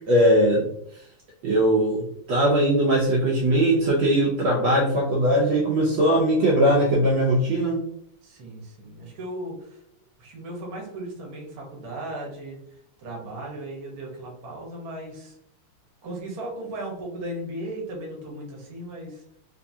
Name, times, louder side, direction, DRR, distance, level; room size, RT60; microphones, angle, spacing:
voice 1, 0.1-0.6 1.4-7.8, right 1 dB, 70° right, -4 dB, 1.4 m, -20 dB
voice 2, 8.2-9.8 10.2-12.6 13.0-15.3 16.0-19.2, right 1 dB, 50° right, -2 dB, 1.4 m, -36 dB
3.5 x 3.2 x 2.7 m, 0.72 s
omnidirectional pair, 2.4 m